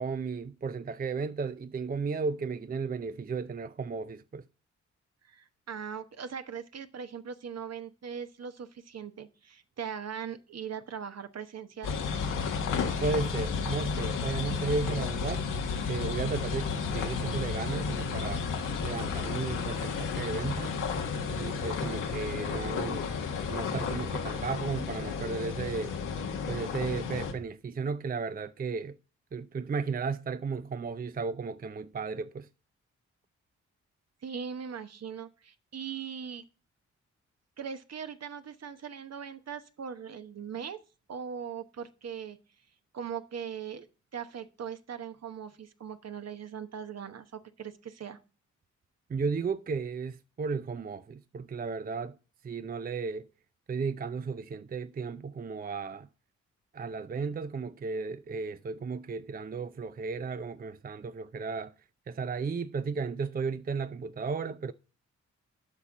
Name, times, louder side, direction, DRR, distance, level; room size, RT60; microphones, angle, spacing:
voice 1, 0.0-4.4 13.0-15.4 15.9-18.5 18.8-20.8 21.3-23.1 23.5-26.0 26.5-29.0 29.3-32.5 49.1-52.2 52.4-53.3 53.7-56.1 56.7-61.7 62.1-64.7, right 5 dB, 30° right, 0.5 m, -34 dB
voice 2, 5.3-12.0 34.2-36.4 37.6-40.8 41.1-42.4 42.9-43.9 44.1-48.2, right 7 dB, 55° right, 1.0 m, -40 dB
sound 1, 11.8-27.3, left 5 dB, 85° left, 1.4 m, -32 dB
8.2 x 5.8 x 5.1 m
supercardioid pair, 45°, 31 cm